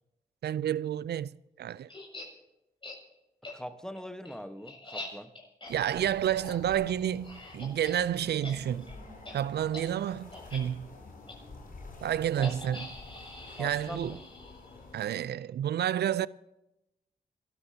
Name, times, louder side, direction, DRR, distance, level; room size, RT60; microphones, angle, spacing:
voice 1, 0.4-1.3 1.6-1.9 5.7-9.0 9.3-10.9 12.0-12.9 13.6-14.2 14.9-16.3, right 10 dB, 75° right, 0.5 m, -30 dB
sound 1, 1.9-2.3 2.8-3.0 3.4-3.5 4.0-8.0 8.3-8.5 8.8-8.9 9.2-9.3 9.7-9.9 10.3-10.6 11.3-11.4 12.4-14.8, left 2 dB, 30° left, 7.1 m, -44 dB
voice 2, 3.5-5.3 12.4-12.5 13.6-14.2, equal, 5° left, 1.3 m, -42 dB
sound 2, 5.7-15.0, left 3 dB, 55° left, 6.2 m, -49 dB
28.5 x 13.5 x 2.9 m
cardioid pair, 65°, 17 cm